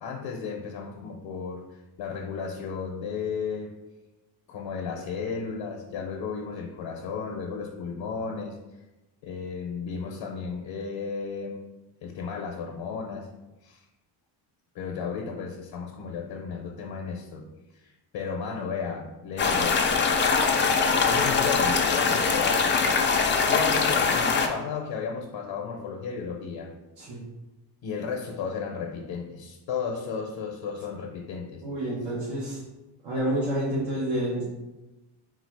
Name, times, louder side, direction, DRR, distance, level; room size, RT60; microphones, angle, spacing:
voice 1, 0.0-3.7 4.5-8.6 9.2-11.6 12.0-13.3 13.6-13.8 14.7-17.4 17.7-20.1 21.1-22.7 23.4-26.7 27.8-31.6, left 5 dB, 70° left, 0 dB, 0.7 m, -34 dB
sound 1, 19.4-24.5, left 5 dB, 25° left, 0.3 m, -22 dB
voice 2, 31.6-32.6 33.0-34.4, right 1 dB, 70° right, -8 dB, 1.3 m, -28 dB
3.9 x 2.4 x 4.6 m, 1.0 s
cardioid pair, 125°, 46 cm